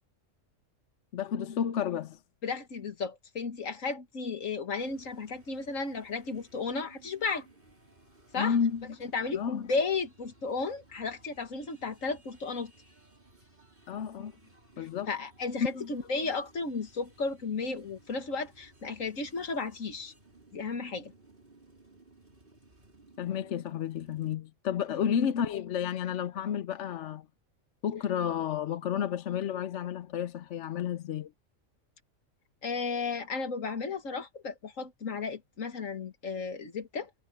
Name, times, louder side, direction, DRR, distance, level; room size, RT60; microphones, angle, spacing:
voice 1, 1.1-2.2 8.4-8.9 9.3-9.7 13.9-14.3 14.8-15.1 15.8-15.9 23.2-27.2 27.8-31.3, left 8 dB, 65° left, 1.0 m, -31 dB
voice 2, 2.4-7.5 8.3-8.6 9.0-12.7 14.8-20.1 20.5-21.1 32.6-37.2, left 4 dB, 85° left, 2.1 m, -34 dB
sound 1, 4.8-24.4, right 2 dB, 40° right, 4.8 m, -59 dB
omnidirectional pair, 1.3 m